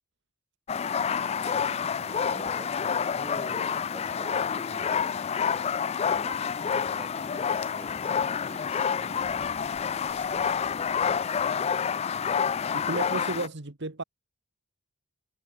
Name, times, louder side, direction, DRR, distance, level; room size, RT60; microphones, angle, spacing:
sound 1, 0.7-13.5, left 7 dB, 30° left, 0.3 m, -28 dB
voice 1, 1.2-5.2 6.1-8.1 8.5-9.4 10.0-10.6, right 2 dB, 25° right, 6.0 m, -47 dB
sound 2, 8.4-8.8 9.2-11.7, left 1 dB, 80° left, 3.3 m, -56 dB
voice 2, 12.7-14.0, right 2 dB, 50° right, 1.7 m, -33 dB
head